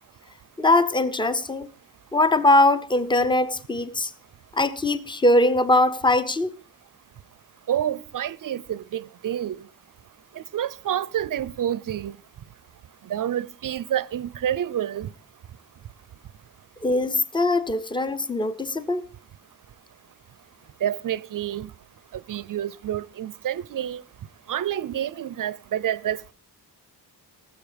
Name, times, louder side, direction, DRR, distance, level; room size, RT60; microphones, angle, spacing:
voice 1, 0.6-1.7 2.1-4.1 4.5-6.5 16.8-19.1, left 2 dB, 10° left, 0.6 m, -21 dB
voice 2, 7.7-9.6 10.4-12.2 13.1-15.1 20.8-21.7 22.3-24.0 24.5-26.3, right 10 dB, 55° right, 0.5 m, -28 dB
18.5 x 7.7 x 5.1 m
wide cardioid pair, 150°, 39 cm